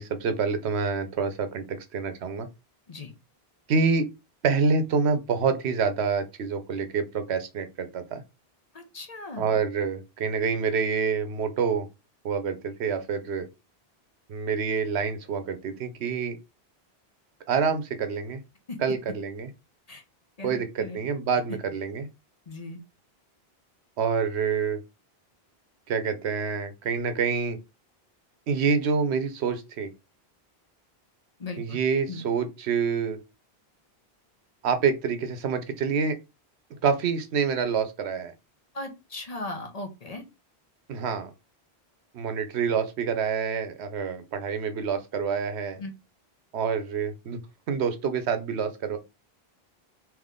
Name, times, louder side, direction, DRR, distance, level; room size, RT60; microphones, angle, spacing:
voice 1, 0.0-2.5 3.7-4.0 4.4-8.2 9.4-11.9 12.2-13.5 14.3-16.4 17.5-18.4 18.8-19.5 20.4-22.1 24.0-24.8 25.9-27.6 28.5-29.9 31.6-33.2 34.6-36.2 36.8-38.3 40.9-41.3 42.1-45.8 46.5-47.4 47.7-49.0, right 5 dB, 90° right, 1.0 m, -27 dB
voice 2, 8.7-9.6 18.7-18.8 19.9-20.0 20.4-21.0 22.5-22.8 31.4-31.8 32.1-32.3 38.7-40.2 45.8-45.9, left 2 dB, 40° left, 0.9 m, -38 dB
3.5 x 2.9 x 3.6 m
omnidirectional pair, 1.1 m